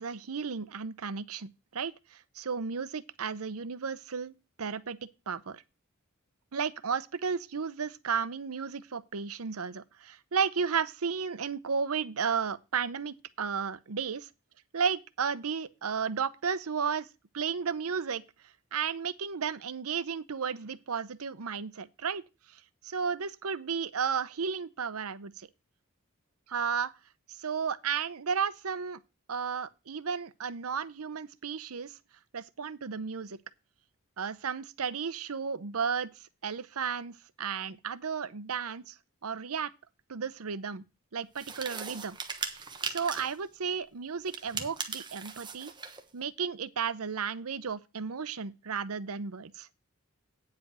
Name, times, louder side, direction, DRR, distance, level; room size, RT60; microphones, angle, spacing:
voice 1, 0.0-5.0 5.3-5.6 6.5-14.3 14.7-17.1 17.3-18.2 18.7-22.2 22.5-25.5 26.5-26.9 27.3-29.0 29.3-32.0 32.3-33.4 34.2-36.1 36.4-39.0 39.2-39.7 40.1-40.8 41.1-42.2 42.4-45.7 46.1-49.7, right 6 dB, 90° right, 0.7 m, -33 dB
sound 1, 41.4-43.4 44.3-46.0, right 5 dB, 20° right, 1.2 m, -38 dB
9.4 x 5.0 x 7.5 m
head